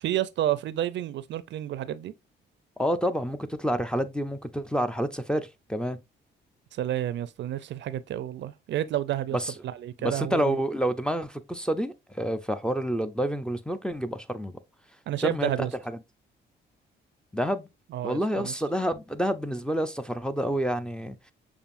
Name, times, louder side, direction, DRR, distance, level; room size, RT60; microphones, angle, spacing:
voice 1, 0.0-2.1 6.7-9.4 9.6-10.6 15.1-15.7 17.9-18.5, right 12 dB, 65° right, 0.5 m, -30 dB
voice 2, 2.8-6.0 9.3-9.5 10.0-14.5 15.2-15.7 17.3-17.7 18.0-21.3, equal, 5° left, 0.5 m, -28 dB
6.9 x 2.6 x 2.5 m
cardioid pair, 90°, 20 cm